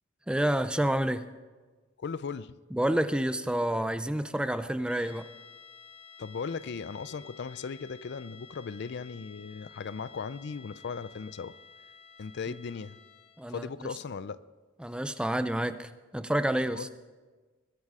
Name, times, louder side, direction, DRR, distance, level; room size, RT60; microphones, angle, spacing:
voice 1, 0.3-1.3 2.7-5.3 13.4-13.9 14.8-16.9, right 1 dB, 5° right, 12 dB, 0.4 m, -29 dB
voice 2, 2.0-2.5 6.2-11.5 12.2-13.0 13.5-14.4 16.7-16.9, left 5 dB, 55° left, 16 dB, 0.4 m, -37 dB
sound 1, 4.8-13.6, left 6 dB, 30° left, 0.9 m, -53 dB
21.5 x 10.5 x 4.9 m, 1.3 s
head